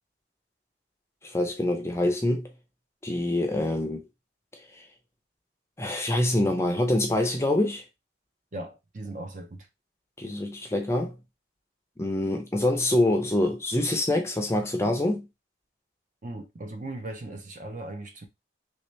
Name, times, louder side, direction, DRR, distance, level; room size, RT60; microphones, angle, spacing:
voice 1, 1.2-2.5 3.0-4.0 4.5-4.9 5.8-7.8 10.2-11.2 12.0-15.3, left 1 dB, 15° left, 0.5 m, -25 dB
voice 2, 8.5-9.7 16.2-18.3, right 2 dB, 40° right, 0.6 m, -38 dB
3.3 x 2.8 x 3.1 m
head